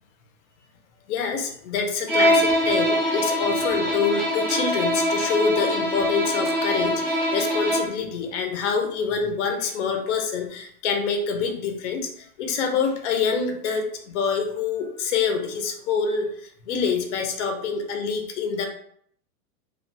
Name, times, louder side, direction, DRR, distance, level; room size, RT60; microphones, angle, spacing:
voice 1, 1.1-18.7, left 5 dB, 50° left, 4 dB, 0.6 m, -26 dB
Bowed string instrument, 2.1-8.0, equal, 5° left, 0.4 m, -23 dB
2.3 x 2.2 x 3.9 m, 0.64 s
supercardioid pair, 170°, 46 cm